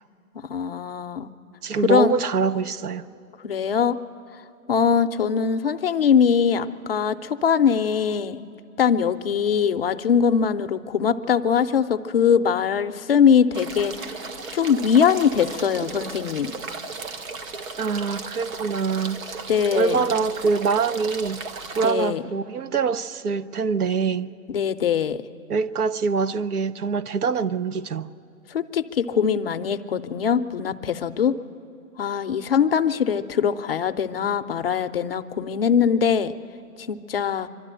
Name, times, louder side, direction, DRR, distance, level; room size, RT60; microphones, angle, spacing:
voice 1, 0.3-1.3 1.8-2.1 3.4-4.0 4.7-8.5 8.8-14.2 14.5-16.5 19.5-20.1 21.8-22.2 24.5-25.2 28.5-31.3 32.0-36.3 36.8-37.5, left 7 dB, 45° left, 0.5 m, -22 dB
voice 2, 1.6-3.0 17.8-19.4 19.7-21.4 21.7-24.3 25.5-28.1, right 5 dB, 90° right, 0.9 m, -24 dB
sound 1, 13.5-21.9, right 4 dB, 65° right, 1.6 m, -36 dB
24.5 x 12.5 x 8.9 m
hypercardioid pair, 160°, 44 cm